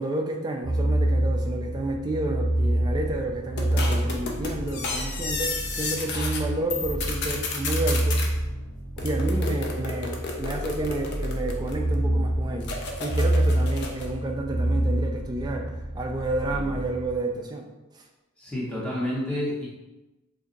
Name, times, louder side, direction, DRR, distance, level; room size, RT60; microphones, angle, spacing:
voice 1, 0.0-8.2 9.0-12.7 13.0-17.7 17.9-18.0, right 2 dB, 20° right, 2 dB, 0.3 m, -30 dB
sound 1, 0.6-17.1, right 1 dB, 75° left, 1.3 m, -27 dB
sound 2, 3.6-6.4 6.7-8.3 9.0-11.9 12.6-14.1, left 3 dB, 50° left, 0.4 m, -32 dB
voice 2, 18.4-19.7, left 1 dB, 5° left, -7 dB, 0.8 m, -30 dB
2.6 x 2.3 x 3.9 m, 1.0 s
head